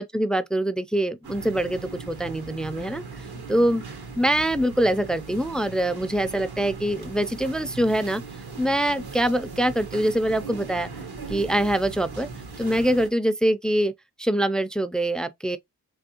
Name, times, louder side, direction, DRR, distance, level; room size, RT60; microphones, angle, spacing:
voice 1, 0.0-3.0 3.5-3.8 4.2-8.2 8.6-10.9 11.3-12.3 12.6-13.9 14.2-15.6, right 1 dB, ahead, 0.4 m, -24 dB
sound 1, 1.2-13.1, right 4 dB, 75° right, 1.4 m, -39 dB
3.5 x 3.3 x 2.8 m
cardioid pair, 50°, 38 cm